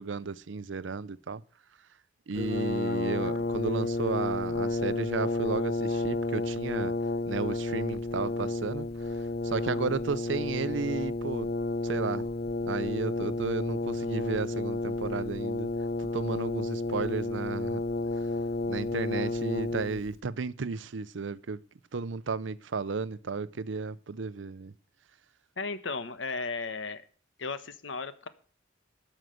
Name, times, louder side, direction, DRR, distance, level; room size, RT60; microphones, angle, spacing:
voice 1, 0.0-1.4 2.3-6.9 7.3-11.5 11.8-12.3 12.7-15.7 16.0-17.8 18.2-18.3 18.7-21.6 21.9-24.7, right 4 dB, 70° right, 0.6 m, -33 dB
Brass instrument, 2.3-20.1, left 2 dB, 50° left, 0.7 m, -31 dB
voice 2, 25.6-27.0 27.4-28.3, left 4 dB, 75° left, 1.1 m, -35 dB
13.0 x 6.5 x 7.7 m
head